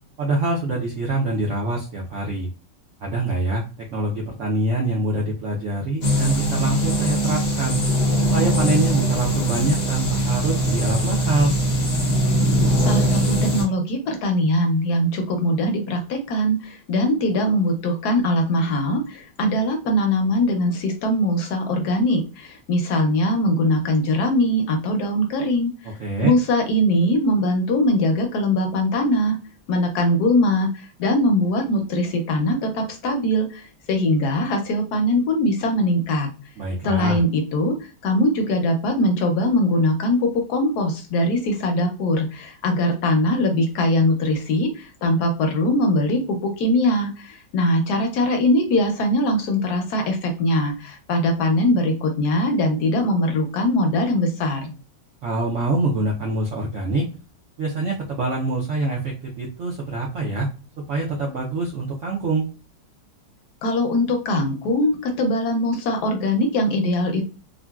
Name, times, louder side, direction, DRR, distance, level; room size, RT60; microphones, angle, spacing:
voice 1, 0.2-2.5 3.0-3.6 3.9-7.8 8.3-11.6 26.0-26.3 36.6-37.2 55.2-57.1 57.6-60.5 60.9-62.5, right 2 dB, 70° right, -3 dB, 0.7 m, -24 dB
sound 1, 6.0-13.6, equal, 50° left, 0.7 m, -21 dB
voice 2, 12.9-25.9 26.2-29.4 29.7-36.3 36.8-37.7 38.0-54.7 63.6-67.2, left 1 dB, 70° left, 3 dB, 1.1 m, -21 dB
3.7 x 2.1 x 2.3 m, 0.33 s
omnidirectional pair, 2.0 m